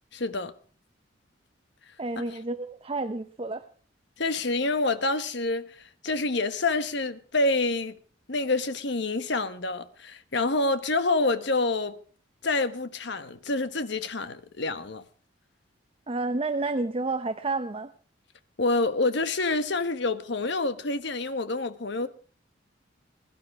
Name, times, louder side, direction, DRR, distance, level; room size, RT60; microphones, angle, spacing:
voice 1, 0.1-0.5 4.2-8.0 8.3-12.0 12.4-15.0 18.6-22.1, left 2 dB, 65° left, 1.2 m, -27 dB
voice 2, 2.0-3.6 16.1-17.9, right 3 dB, 30° right, 0.6 m, -30 dB
21.5 x 11.5 x 4.7 m
head